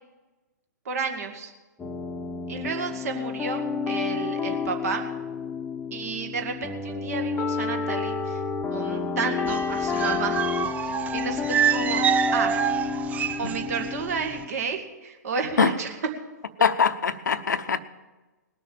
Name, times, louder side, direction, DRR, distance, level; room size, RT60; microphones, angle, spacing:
voice 1, 0.8-1.5 2.5-5.1 5.9-8.4 8.7-10.4 10.9-12.7 13.4-16.0, right 5 dB, 55° right, 2.1 m, -31 dB
sound 1, 1.8-14.5, left 5 dB, 10° left, 0.9 m, -30 dB
sound 2, 9.5-13.9 14.2-14.4, right 8 dB, 15° right, 0.5 m, -26 dB
voice 2, 16.6-17.8, left 6 dB, 75° left, 0.8 m, -22 dB
19.5 x 6.8 x 7.3 m
figure-of-eight pair, 120°, 10 cm